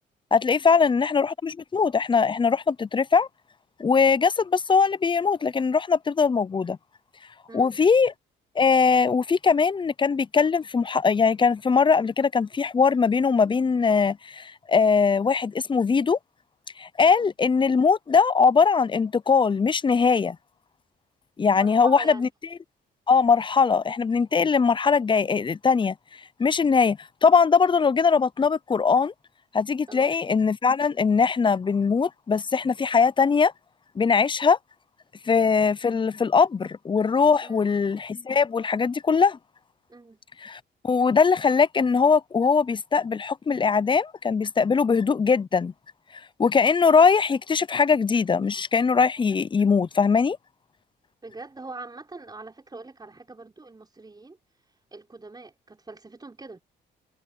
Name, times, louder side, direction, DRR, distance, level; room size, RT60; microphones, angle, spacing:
voice 1, 0.3-3.3 3.8-6.8 7.5-8.1 8.6-16.2 16.8-20.4 21.4-22.3 23.1-25.9 26.4-29.1 29.5-33.5 34.0-34.6 35.3-39.4 40.4-45.7 46.4-50.4, left 5 dB, 25° left, 0.6 m, -21 dB
voice 2, 21.6-22.3 29.9-30.1 37.4-37.7 39.9-40.2 51.2-54.4 54.9-56.6, right 3 dB, 20° right, 5.0 m, -42 dB
cardioid pair, 90°, 20 cm